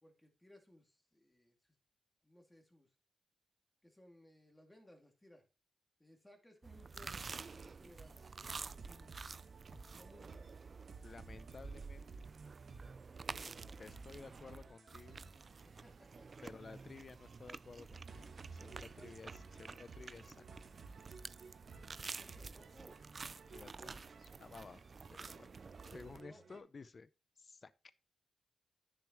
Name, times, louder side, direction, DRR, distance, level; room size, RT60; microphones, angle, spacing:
voice 1, 0.0-1.6 2.2-2.9 3.8-5.4 6.0-9.3 9.7-10.4 13.4-13.8 15.6-16.4 18.8-19.2 21.6-23.0 25.9-26.4, left 1 dB, 15° left, 2.4 m, -63 dB
sound 1, 6.6-26.2, right 4 dB, 45° right, 0.3 m, -50 dB
sound 2, 8.0-26.6, right 4 dB, 65° right, 1.8 m, -58 dB
voice 2, 11.0-12.3 13.8-15.2 16.4-20.5 23.5-24.8 25.2-25.5 25.9-27.1 27.4-27.7, left 4 dB, 45° left, 0.5 m, -54 dB
10.0 x 6.7 x 3.1 m
cardioid pair, 80°, 0 cm